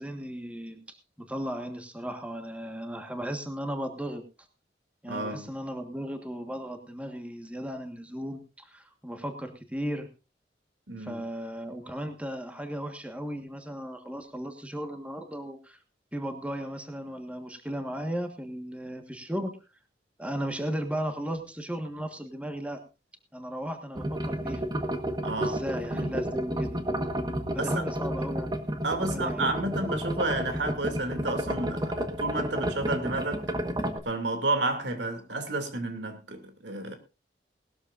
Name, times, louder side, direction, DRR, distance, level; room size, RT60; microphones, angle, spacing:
voice 1, 0.0-4.2 5.0-10.1 11.0-15.8 16.1-19.6 20.2-22.8 23.3-24.6 25.4-26.8 27.5-28.5 29.0-29.5, equal, 5° right, 1.5 m, -36 dB
voice 2, 5.0-5.5 10.9-11.2 25.2-25.6 25.9-26.1 27.6-27.9 28.8-33.5 34.0-37.0, right 2 dB, 85° right, 2.6 m, -31 dB
sound 1, 23.9-34.0, right 1 dB, 25° right, 1.4 m, -31 dB
19.5 x 13.0 x 2.6 m
head